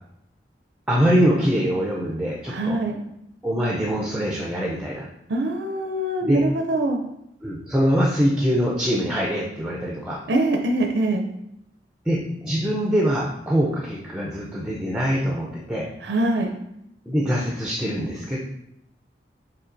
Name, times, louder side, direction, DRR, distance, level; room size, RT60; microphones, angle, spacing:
voice 1, 0.9-2.8 3.4-5.1 6.2-6.5 7.4-10.2 12.1-15.9 17.1-18.4, equal, 5° right, -3 dB, 0.5 m, -23 dB
voice 2, 2.5-3.0 5.3-7.0 10.3-11.2 16.0-16.5, right 1 dB, 75° right, 3 dB, 0.4 m, -23 dB
5.5 x 3.6 x 2.5 m, 0.80 s
head